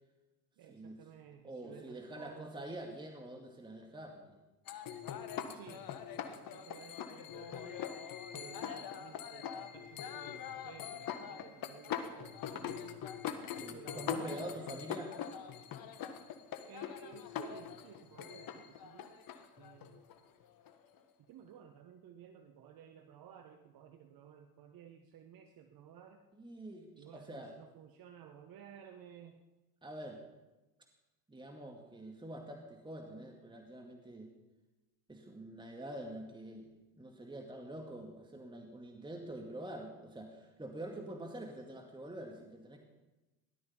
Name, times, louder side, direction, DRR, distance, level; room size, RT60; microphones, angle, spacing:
voice 1, 0.6-2.7 5.5-7.9 8.3-13.0 13.7-14.8 16.6-19.1 19.6-20.0 21.2-26.2 26.9-29.4, right 8 dB, 50° right, 6 dB, 1.3 m, -55 dB
voice 2, 1.4-4.4 13.5-15.1 26.4-27.5 29.8-30.2 31.3-34.3 35.1-36.7 37.0-42.8, right 1 dB, 10° right, 2 dB, 2.1 m, -46 dB
sound 1, 4.7-21.0, left 8 dB, 45° left, 1.5 m, -43 dB
17.5 x 12.5 x 5.6 m, 1.1 s
hypercardioid pair, 75°, 46 cm